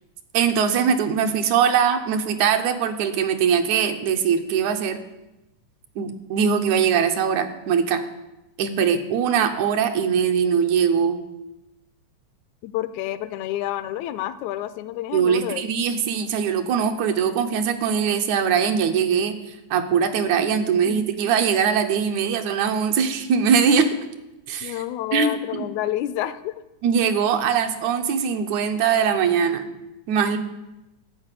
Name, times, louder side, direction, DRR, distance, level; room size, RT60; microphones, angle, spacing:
voice 1, 0.3-5.0 6.0-8.0 8.6-11.2 15.1-19.4 19.7-23.9 24.5-24.8 25.1-25.7 26.8-29.7 30.1-30.4, right 7 dB, 80° right, 6 dB, 2.2 m, -21 dB
voice 2, 12.6-15.6 20.9-21.1 24.6-26.5, left 13 dB, 80° left, 13 dB, 1.9 m, -29 dB
12.0 x 4.9 x 8.2 m, 0.97 s
omnidirectional pair, 3.4 m